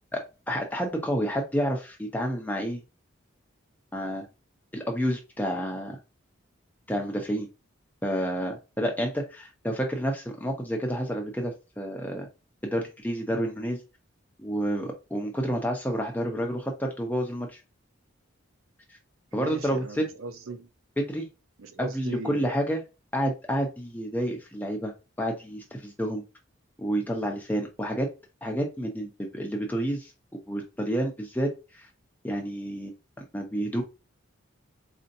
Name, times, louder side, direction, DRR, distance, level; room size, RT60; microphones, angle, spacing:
voice 1, 0.1-2.8 3.9-4.3 4.7-6.0 6.9-7.5 8.0-12.3 12.6-13.8 14.4-17.6 19.3-20.1 21.0-21.3 21.8-22.8 23.1-24.9 25.2-26.2 26.8-28.1 28.4-31.9 32.2-32.9 33.2-33.8, equal, 10° left, 0.7 m, -29 dB
voice 2, 19.3-20.7 21.6-22.6, right 3 dB, 85° right, 0.6 m, -39 dB
4.2 x 2.7 x 2.6 m
head